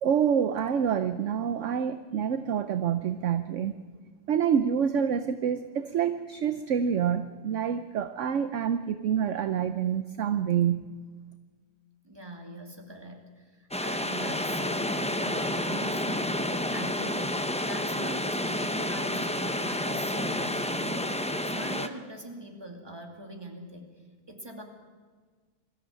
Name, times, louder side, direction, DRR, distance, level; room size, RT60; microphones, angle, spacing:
voice 1, 0.0-3.8 4.3-11.0, right 8 dB, 60° right, 11 dB, 0.9 m, -27 dB
voice 2, 12.0-17.4 17.6-23.9 24.3-24.6, right 1 dB, 15° right, 2 dB, 2.5 m, -42 dB
sound 1, 13.7-21.9, left 1 dB, 10° left, 0.4 m, -30 dB
22.0 x 14.5 x 9.1 m, 1.5 s
omnidirectional pair, 1.7 m